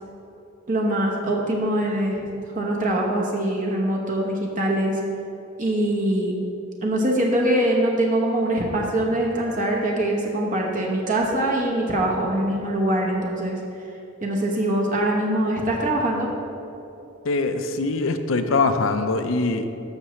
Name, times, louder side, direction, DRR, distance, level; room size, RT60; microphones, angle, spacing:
voice 1, 0.7-2.3 2.5-5.0 5.6-6.3 6.8-13.6 14.2-16.3, right 1 dB, 40° right, -1 dB, 0.9 m, -23 dB
voice 2, 17.2-19.7, left 3 dB, 75° left, 8 dB, 0.6 m, -23 dB
13.0 x 5.9 x 3.1 m, 2.9 s
head